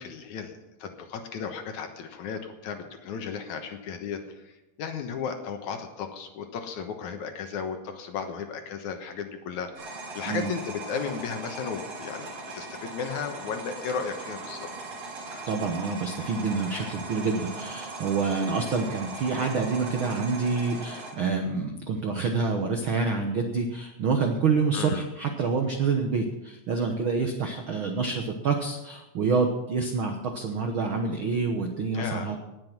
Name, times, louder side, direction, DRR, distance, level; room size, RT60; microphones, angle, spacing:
voice 1, 0.0-4.2 4.8-14.7 24.7-25.0 31.9-32.3, left 6 dB, 65° left, 5 dB, 2.4 m, -35 dB
sound 1, 9.7-21.1, right 2 dB, 50° right, 3.8 m, -39 dB
voice 2, 15.5-32.4, right 4 dB, 70° right, 4 dB, 1.2 m, -27 dB
19.0 x 7.6 x 6.0 m, 0.97 s
omnidirectional pair, 3.9 m